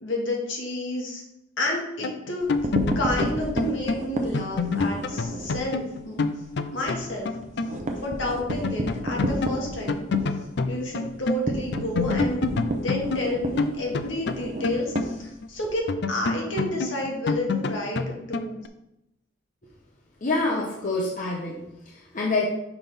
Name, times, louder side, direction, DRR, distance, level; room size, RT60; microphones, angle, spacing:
voice 1, 0.0-1.2 1.6-2.5 3.0-6.2 6.7-7.3 8.0-10.1 10.7-12.5 12.8-18.6, left 1 dB, 70° left, -1 dB, 1.7 m, -30 dB
sound 1, 2.0-8.1 8.5-11.4 11.7-15.5 15.9-18.7, left 4 dB, 55° left, 0.4 m, -28 dB
sound 2, 2.4-5.6 6.0-6.2 6.5-6.6 6.9-15.8, right 1 dB, 35° right, 0.7 m, -31 dB
voice 2, 20.2-22.5, left 3 dB, 40° left, -3 dB, 0.9 m, -27 dB
5.9 x 5.7 x 3.4 m, 0.84 s
head